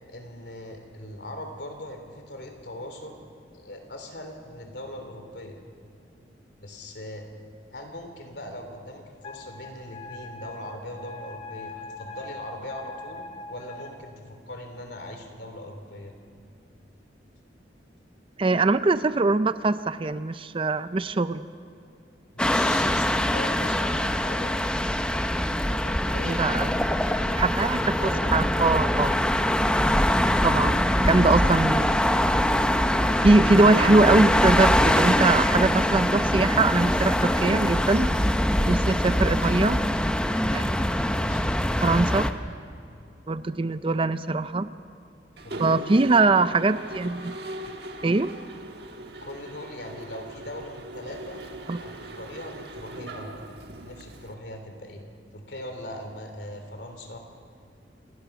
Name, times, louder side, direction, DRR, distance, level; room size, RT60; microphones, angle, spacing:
voice 1, 0.1-5.6 6.6-7.3 7.7-16.2 22.3-24.5 25.4-27.5 28.0-28.8 30.5-31.0 39.1-39.7 41.0-41.6 45.4-45.9 49.2-51.5 51.8-53.4 53.8-55.0 55.3-57.2, left 1 dB, 70° left, 5 dB, 3.4 m, -40 dB
Wind instrument woodwind instrument, 9.2-14.0, left 2 dB, 30° left, 1.7 m, -41 dB
voice 2, 18.4-21.5 26.2-26.7 27.4-27.9 28.3-29.1 30.4-31.9 33.2-38.1 38.7-39.8 40.5-40.7 41.8-42.3 43.3-44.7 45.6-47.4 48.0-48.4 51.7-51.8, right 3 dB, 30° right, 13 dB, 0.5 m, -22 dB
sound 1, 22.4-42.3, left 1 dB, 5° left, 0.8 m, -23 dB
Mechanisms, 45.4-54.3, right 1 dB, 65° right, 1.4 m, -40 dB
28.0 x 18.0 x 6.0 m, 2.5 s
head